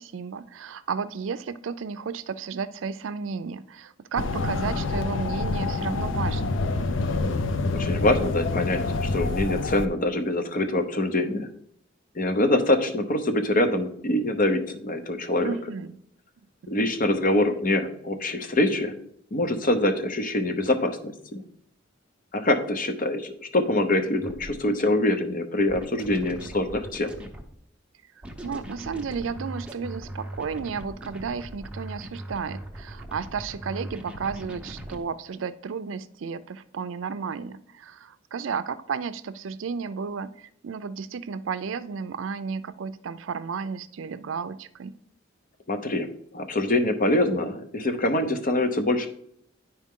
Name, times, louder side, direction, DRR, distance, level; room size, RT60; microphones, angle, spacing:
voice 1, 0.0-6.6 15.4-16.0 28.4-44.9, right 5 dB, 80° right, 13 dB, 0.4 m, -33 dB
sound 1, 4.2-9.9, left 3 dB, 75° left, 0.6 m, -27 dB
voice 2, 7.7-11.5 12.1-15.5 16.7-18.9 19.3-21.4 22.3-27.1 45.7-46.1 46.3-49.1, left 1 dB, 45° left, 7 dB, 0.8 m, -24 dB
sound 2, 24.1-24.5 25.7-27.5 28.2-35.0, right 1 dB, 5° right, 0.8 m, -39 dB
10.5 x 4.4 x 3.7 m, 0.68 s
head